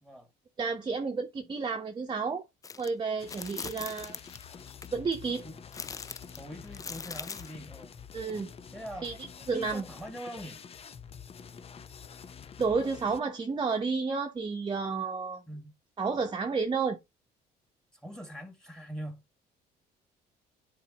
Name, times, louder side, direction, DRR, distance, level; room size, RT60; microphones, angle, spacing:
voice 1, 0.6-2.4 2.8-4.2 4.9-5.4 8.1-8.5 9.0-9.1 9.5-9.8 12.6-15.4 16.0-17.0, right 4 dB, 25° right, 1.0 m, -31 dB
sound 1, 2.6-2.9 3.3-4.9 5.7-7.5, left 5 dB, 20° left, 0.3 m, -41 dB
sound 2, 3.2-13.2, left 7 dB, 35° left, 0.7 m, -48 dB
voice 2, 6.4-8.0 8.7-9.1 9.5-10.6 15.5-15.7 17.9-19.2, equal, 5° left, 1.8 m, -43 dB
10.0 x 4.4 x 2.9 m
cardioid pair, 110°, 17 cm